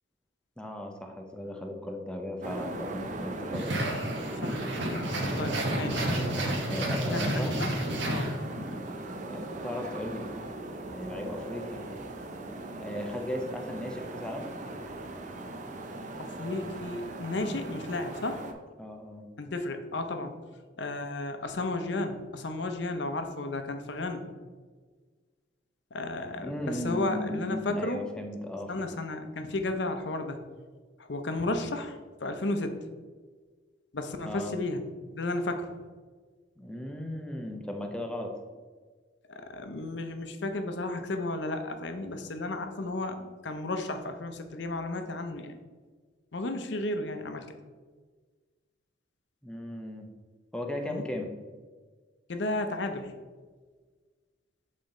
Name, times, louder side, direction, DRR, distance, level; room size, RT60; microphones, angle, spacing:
voice 1, 0.6-3.7 5.5-7.5 9.2-10.3 10.9-11.8 12.7-14.5 18.8-19.2 26.4-28.9 34.2-34.5 36.6-38.3 49.4-50.1 50.5-51.3, left 1 dB, 5° left, 3 dB, 0.6 m, -37 dB
sound 1, 2.4-18.5, right 2 dB, 40° right, 0.6 m, -39 dB
sound 2, 3.5-8.7, right 1 dB, 65° right, 1.1 m, -31 dB
voice 2, 4.8-6.1 7.0-7.7 8.1-8.3 8.6-8.7 16.2-18.4 19.4-20.3 20.8-24.3 25.9-28.1 28.7-30.5 31.0-32.8 33.9-34.8 35.1-35.7 39.3-45.6 46.3-47.5 50.8-51.0 52.3-53.1, left 2 dB, 65° left, 7 dB, 0.7 m, -33 dB
7.2 x 4.2 x 3.7 m, 1.5 s
head